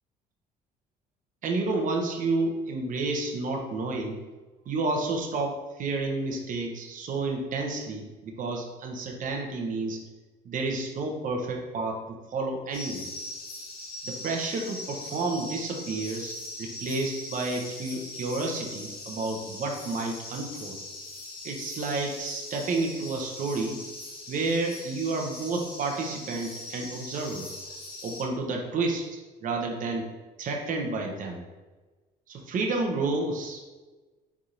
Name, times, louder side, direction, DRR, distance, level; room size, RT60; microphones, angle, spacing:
voice 1, 1.4-4.2 4.7-10.0 10.4-13.1 14.0-20.8 21.4-23.8 24.3-27.5 28.0-30.0 30.4-31.4 32.3-33.7, right 3 dB, 50° right, 2 dB, 0.7 m, -30 dB
sound 1, 12.7-28.2, left 2 dB, 60° left, 1.0 m, -41 dB
4.2 x 3.4 x 2.5 m, 1.2 s
cardioid pair, 110°, 17 cm